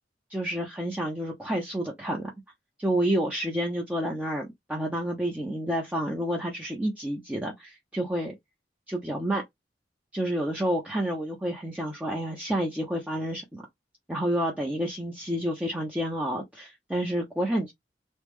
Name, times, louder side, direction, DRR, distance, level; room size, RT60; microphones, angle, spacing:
voice 1, 0.3-2.3 2.8-8.3 8.9-9.4 10.1-13.6 14.1-17.7, right 1 dB, 10° right, 0.7 m, -29 dB
3.2 x 2.3 x 3.5 m
head